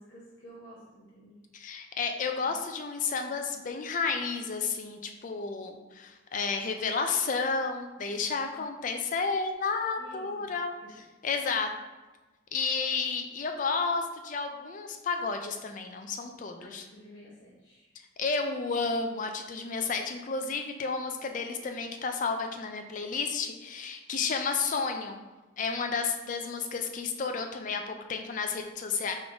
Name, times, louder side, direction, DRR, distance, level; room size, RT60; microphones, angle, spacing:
voice 1, 0.0-1.3 2.4-2.5 8.1-8.6 10.0-10.5 10.8-10.9 16.6-17.9, equal, 60° left, -9 dB, 1.1 m, -52 dB
voice 2, 1.5-10.7 11.2-11.7 12.5-16.8 18.2-25.2 25.6-29.1, left 4 dB, 40° left, 5 dB, 0.4 m, -31 dB
3.7 x 3.6 x 3.4 m, 1.2 s
head